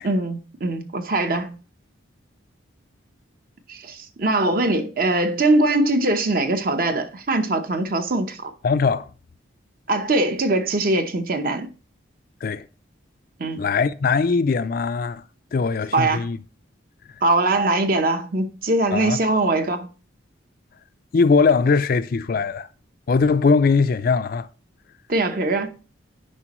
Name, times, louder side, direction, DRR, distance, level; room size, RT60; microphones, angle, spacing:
voice 1, 0.0-1.6 3.7-8.5 9.9-11.7 13.4-13.6 15.9-16.3 17.2-19.9 25.1-25.7, right 2 dB, 45° right, 0.8 m, -22 dB
voice 2, 8.6-9.1 12.4-12.6 13.6-15.2 15.5-16.4 18.9-19.2 21.1-22.7 23.1-24.5, left 4 dB, 45° left, 0.3 m, -20 dB
9.7 x 5.2 x 3.0 m
head